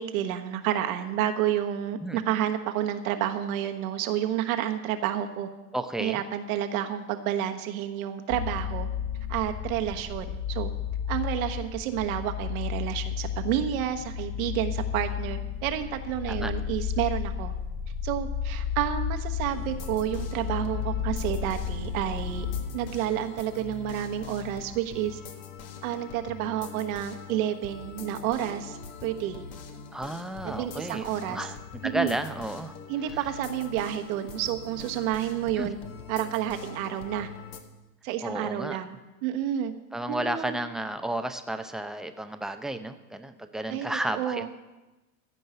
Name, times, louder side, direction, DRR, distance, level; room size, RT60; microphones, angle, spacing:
voice 1, 0.0-5.5 6.0-8.9 9.3-10.7 11.1-17.5 18.0-22.5 22.7-25.2 25.8-29.4 30.4-31.5 31.8-32.1 32.9-35.8 36.1-37.3 38.0-39.7 40.1-40.6 43.7-43.9 44.2-44.5, right 11 dB, 60° right, 6 dB, 1.3 m, -30 dB
voice 2, 5.7-6.2 16.3-16.5 29.9-31.6 31.8-32.7 33.1-33.2 35.6-35.7 38.2-38.8 39.9-44.5, right 1 dB, ahead, 8 dB, 0.6 m, -32 dB
sound 1, 8.3-22.7, left 8 dB, 40° left, 2.3 m, -32 dB
sound 2, 19.5-37.6, left 6 dB, 60° left, 1.7 m, -43 dB
15.5 x 5.4 x 9.0 m, 1.1 s
hypercardioid pair, 90°, 48 cm